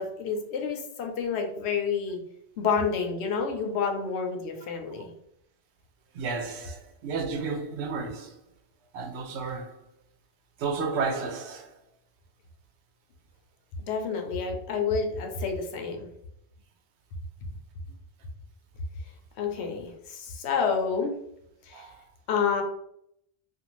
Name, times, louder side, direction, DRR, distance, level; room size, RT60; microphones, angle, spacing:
voice 1, 0.0-2.2 2.6-5.1 13.8-16.1 19.4-21.1 21.7-21.9 22.3-22.6, left 5 dB, 80° left, 0.9 m, -29 dB
voice 2, 6.1-8.4 8.9-9.8 10.6-11.7 21.7-21.9, right 4 dB, 90° right, 0.9 m, -32 dB
2.5 x 2.3 x 2.9 m
omnidirectional pair, 1.1 m